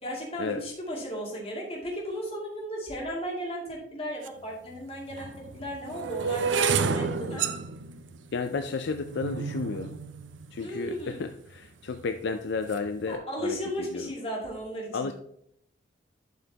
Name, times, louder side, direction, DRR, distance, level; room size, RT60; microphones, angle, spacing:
voice 1, 0.0-7.4 10.6-11.2 13.1-15.1, equal, 35° left, -3 dB, 2.6 m, -35 dB
sound 1, 4.3-4.4 5.1-11.3 11.9-12.3 12.5-12.9, right 5 dB, 70° right, 0.5 m, -30 dB
voice 2, 8.3-10.0 10.5-14.1 14.9-15.1, left 4 dB, 65° left, 7 dB, 0.4 m, -32 dB
10.5 x 5.6 x 2.9 m, 0.72 s
head